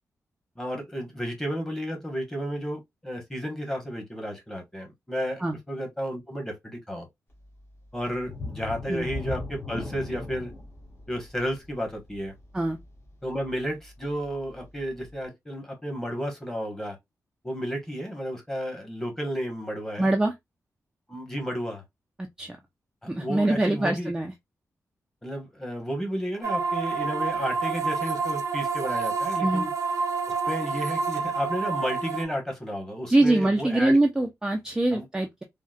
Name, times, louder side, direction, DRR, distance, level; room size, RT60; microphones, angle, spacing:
voice 1, 0.6-7.1 7.9-10.5 11.1-12.3 13.2-17.0 17.4-20.1 21.1-21.8 23.0-24.1 25.2-29.7 30.4-34.0 34.9-35.0, equal, 10° left, 1.2 m, -32 dB
sound 1, 8.2-13.7 14.1-14.3 14.8-14.9, left 2 dB, 40° left, 1.5 m, -38 dB
voice 2, 20.0-20.3 22.4-22.6 23.1-24.3 29.4-29.7 33.1-35.4, right 2 dB, 10° right, 0.4 m, -23 dB
sound 2, 26.4-32.2, right 5 dB, 65° right, 0.7 m, -28 dB
3.7 x 2.1 x 2.4 m
wide cardioid pair, 150°, 6 cm